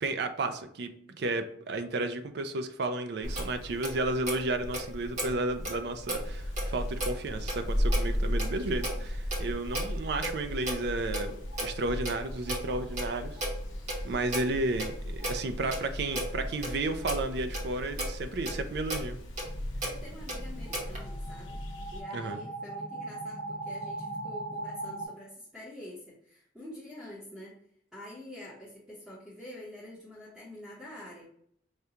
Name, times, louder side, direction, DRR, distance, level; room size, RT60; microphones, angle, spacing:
voice 1, 0.0-0.9 1.2-13.4 14.0-19.2 22.1-22.4, right 2 dB, 55° right, 8 dB, 0.4 m, -32 dB
Clock, 3.2-21.0, equal, 40° right, 1.0 m, -35 dB
sound 1, 6.1-22.0, equal, 75° left, 0.7 m, -39 dB
voice 2, 14.1-14.6 19.8-21.6 21.9-27.5 27.9-31.3, left 1 dB, ahead, -10 dB, 0.8 m, -46 dB
sound 2, 19.5-25.1, right 2 dB, 40° left, 0.5 m, -40 dB
4.9 x 2.2 x 2.8 m, 0.68 s
head